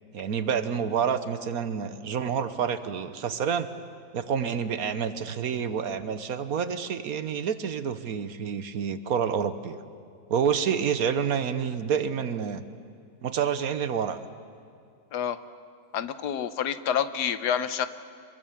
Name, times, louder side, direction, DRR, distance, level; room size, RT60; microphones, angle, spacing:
voice 1, 0.1-3.7 4.1-9.8 10.3-12.6 13.2-14.2, right 7 dB, 65° right, 11 dB, 1.4 m, -28 dB
voice 2, 15.9-17.9, left 8 dB, 85° left, 12 dB, 1.5 m, -28 dB
26.0 x 22.5 x 7.2 m, 2.4 s
omnidirectional pair, 1.7 m